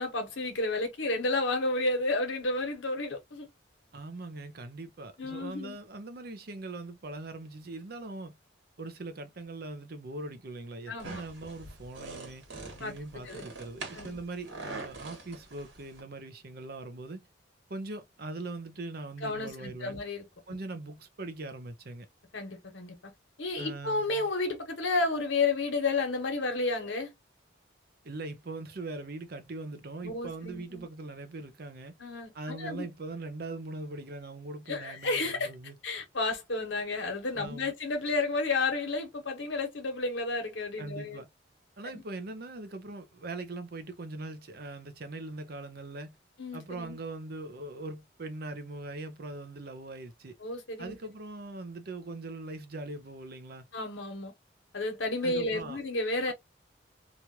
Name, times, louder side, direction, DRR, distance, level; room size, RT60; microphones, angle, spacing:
voice 1, 0.0-3.5 5.2-5.8 10.9-11.2 12.8-12.9 13.2-13.4 13.9-14.2 19.2-20.2 22.3-23.0 23.4-27.1 30.0-30.8 32.0-32.9 34.7-35.5 35.8-41.2 41.9-42.0 46.4-47.0 50.4-51.0 53.7-54.3 54.7-56.3, left 3 dB, 80° left, 1.2 m, -31 dB
voice 2, 3.9-8.4 8.8-12.4 12.8-17.3 17.7-20.0 20.5-22.1 23.6-24.3 28.0-32.0 32.3-35.8 37.3-37.7 40.8-41.3 41.8-46.2 46.5-50.4 50.8-53.7 55.2-55.8 56.3-56.4, right 2 dB, 55° right, 0.6 m, -41 dB
sound 1, 11.0-16.0, right 3 dB, 80° right, 1.4 m, -44 dB
3.0 x 2.4 x 2.8 m
head